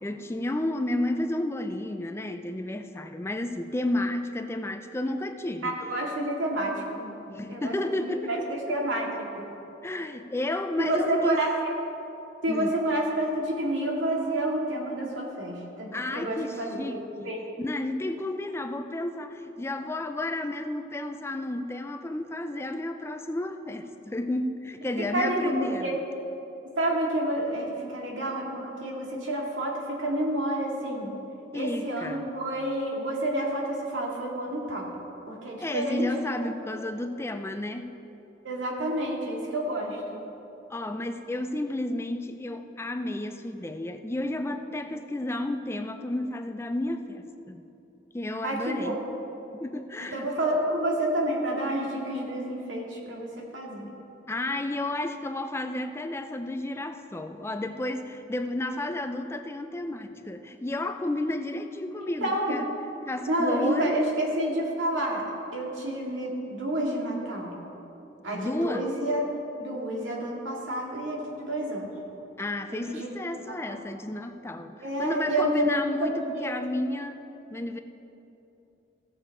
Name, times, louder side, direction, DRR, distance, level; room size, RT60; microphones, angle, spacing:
voice 1, 0.0-5.7 7.3-8.8 9.8-11.4 12.5-12.7 15.9-17.3 17.6-26.0 31.5-32.3 35.6-37.9 40.7-47.7 48.1-49.0 49.5-50.3 54.3-62.7 63.1-64.0 68.3-68.9 72.4-77.2 77.5-77.8, left 1 dB, 15° left, 7 dB, 0.4 m, -32 dB
voice 2, 5.6-7.2 7.5-9.1 9.4-9.5 10.8-11.7 12.4-17.4 25.0-26.0 26.8-31.1 31.5-34.9 35.3-36.5 38.4-40.2 48.4-49.0 50.1-53.9 62.2-62.5 63.3-65.2 65.5-67.5 68.2-69.2 69.6-71.9 72.7-73.1 73.5-73.8 74.8-76.5, right 1 dB, 85° right, -2 dB, 2.2 m, -29 dB
16.5 x 7.0 x 4.7 m, 2.9 s
head